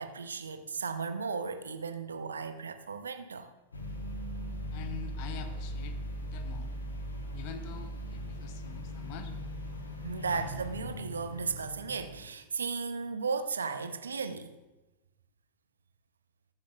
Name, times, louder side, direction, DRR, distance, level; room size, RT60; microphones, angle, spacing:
voice 1, 0.0-3.5 10.0-14.5, right 5 dB, 70° right, 0.7 m, -35 dB
sound 1, 3.7-12.3, equal, 75° left, 1.4 m, -39 dB
voice 2, 4.7-6.7 7.3-9.3, left 6 dB, 45° left, 0.8 m, -45 dB
20.5 x 7.5 x 2.4 m
figure-of-eight pair, 90°, 0 cm